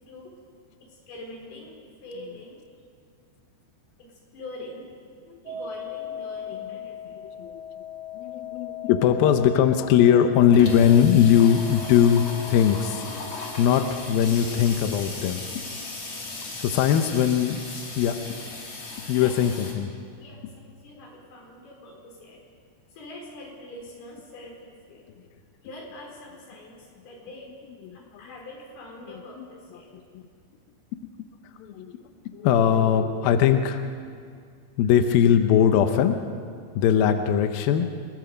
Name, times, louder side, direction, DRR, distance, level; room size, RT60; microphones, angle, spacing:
voice 1, 0.8-2.6 4.0-4.9 5.4-7.2 16.9-17.2 19.2-19.4 20.2-22.4 22.9-25.1 25.6-27.5 27.9-29.9, left 2 dB, 55° left, -1 dB, 5.8 m, -44 dB
sound 1, 5.5-14.1, left 8 dB, 50° right, 6.3 m, -39 dB
voice 2, 8.2-13.0 13.6-15.4 16.6-17.6 18.0-18.2 19.1-19.9 29.4-29.5 30.1-30.2 31.6-32.0 32.3-33.8 34.8-36.2 36.8-37.9, left 9 dB, 75° left, 7 dB, 2.2 m, -20 dB
Water tap faucet / Sink (filling or washing), 9.1-9.2 9.5-9.6 9.8-19.7, left 2 dB, 35° left, 2.8 m, -37 dB
29.0 x 20.0 x 5.2 m, 2.2 s
omnidirectional pair, 5.3 m